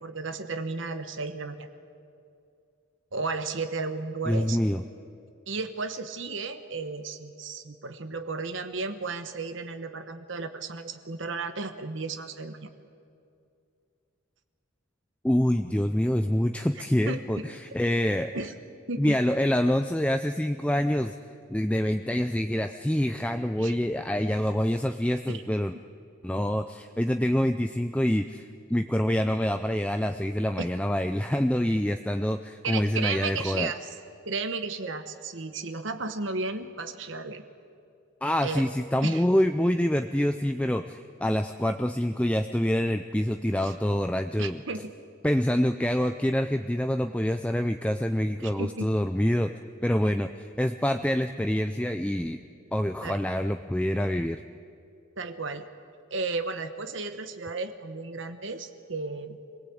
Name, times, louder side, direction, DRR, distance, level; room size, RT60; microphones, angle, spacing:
voice 1, 0.0-1.7 3.1-4.6 5.5-12.7 17.1-17.5 18.3-18.5 18.9-19.2 23.6-23.7 25.3-25.4 32.6-33.9 34.2-37.4 38.4-38.6 39.0-39.2 43.6-43.7 44.4-44.9 48.4-48.9 53.0-53.2 55.2-55.6 56.1-59.4, right 3 dB, 60° right, 8 dB, 1.2 m, -34 dB
voice 2, 4.3-4.8 15.2-18.3 19.0-21.1 21.5-25.7 26.2-33.7 38.2-44.6 45.2-49.5 49.8-52.4 52.7-54.4, left 1 dB, 5° left, 7 dB, 0.4 m, -26 dB
25.0 x 18.0 x 8.6 m, 2.5 s
head